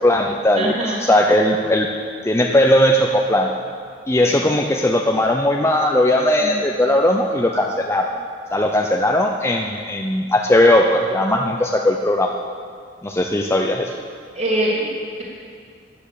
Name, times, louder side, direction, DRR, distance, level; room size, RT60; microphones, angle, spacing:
voice 1, 0.0-1.9 2.2-3.5 4.1-8.1 8.5-12.3 13.0-13.9, left 1 dB, 15° left, 1 dB, 0.6 m, -18 dB
voice 2, 0.5-1.1 4.2-4.4 6.4-6.5 14.3-14.8, right 1 dB, 35° right, -4 dB, 3.0 m, -23 dB
13.5 x 9.8 x 6.9 m, 2.1 s
head